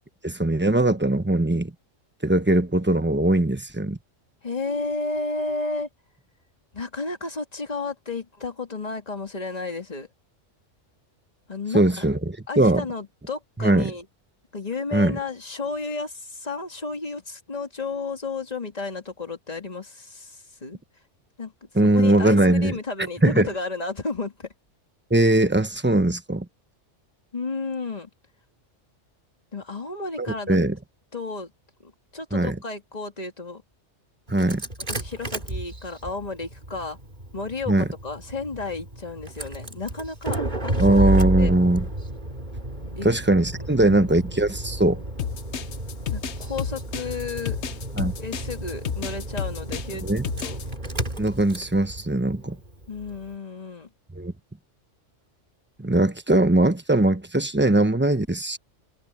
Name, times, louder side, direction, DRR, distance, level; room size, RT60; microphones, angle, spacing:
voice 1, 0.2-1.7 2.2-4.0 11.7-12.8 13.6-13.9 14.9-15.2 21.7-22.8 23.2-23.5 25.1-26.5 30.2-30.8 32.3-32.6 34.3-34.6 37.7-37.9 40.8-41.9 43.0-45.0 48.0-48.1 50.0-50.2 51.2-52.6 54.1-54.3 55.8-58.6, right 1 dB, 10° right, 0.9 m, -20 dB
voice 2, 4.4-5.9 6.7-10.1 11.5-12.1 12.5-14.1 14.5-20.8 21.4-21.5 21.9-24.5 27.3-28.1 29.5-30.6 31.1-31.5 31.8-33.6 34.9-37.0 37.3-40.4 40.6-41.1 41.4-41.6 43.0-43.1 46.1-47.6 48.2-50.0 50.4-50.6 52.9-53.9, left 3 dB, 30° left, 2.3 m, -32 dB
Engine starting, 34.3-53.2, right 1 dB, 40° right, 3.7 m, -31 dB
sound 1, 45.2-50.7, left 8 dB, 65° left, 1.1 m, -31 dB
omnidirectional pair, 1.3 m